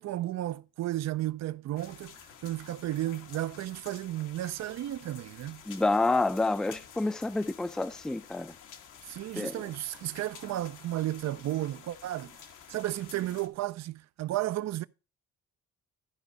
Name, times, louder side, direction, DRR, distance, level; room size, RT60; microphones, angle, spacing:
voice 1, 0.0-5.6 9.0-12.4 12.7-14.9, right 15 dB, 60° right, 0.5 m, -33 dB
sound 1, 1.8-13.5, left 7 dB, 90° left, 1.4 m, -51 dB
voice 2, 5.7-8.5 9.4-9.5, left 2 dB, ahead, 0.4 m, -28 dB
14.0 x 5.1 x 3.9 m
cardioid pair, 90°, 30 cm